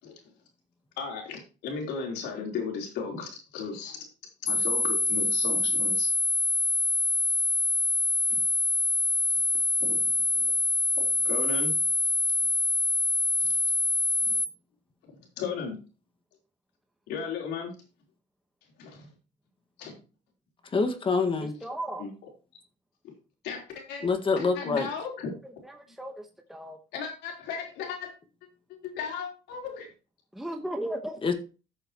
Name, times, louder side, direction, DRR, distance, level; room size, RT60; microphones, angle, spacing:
voice 1, 1.0-4.0 4.4-6.1 8.3-8.4 9.8-10.0 10.3-10.5 11.0-11.8 13.4-13.6 14.3-14.4 15.0-15.8 17.1-17.7 18.8-19.1 19.8-20.0 22.0-22.1 23.0-23.1 23.4-24.1 24.4-25.3 26.9-28.1 28.8-29.9, left 5 dB, 85° left, 1 dB, 3.7 m, -36 dB
sound 1, 4.5-14.5, left 2 dB, 65° left, 0.8 m, -25 dB
voice 2, 20.7-21.5 24.0-24.8 31.2-31.3, left 4 dB, 30° left, 7 dB, 1.7 m, -25 dB
voice 3, 21.4-22.0 25.6-26.8 30.3-31.2, right 1 dB, ahead, 4 dB, 1.2 m, -36 dB
14.0 x 6.8 x 3.0 m, 0.34 s
cardioid pair, 110°, 17 cm